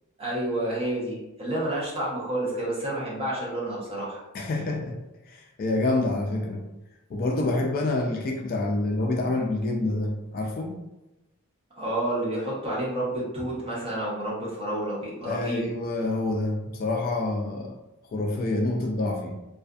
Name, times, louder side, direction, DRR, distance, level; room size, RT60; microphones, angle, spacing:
voice 1, 0.2-4.2 11.8-15.6, right 1 dB, 25° right, -6 dB, 0.8 m, -29 dB
voice 2, 4.3-5.0 5.3-6.6 7.1-10.8 15.3-17.8 18.1-19.4, left 2 dB, 40° left, 2 dB, 0.3 m, -27 dB
2.5 x 2.4 x 2.3 m, 0.97 s
head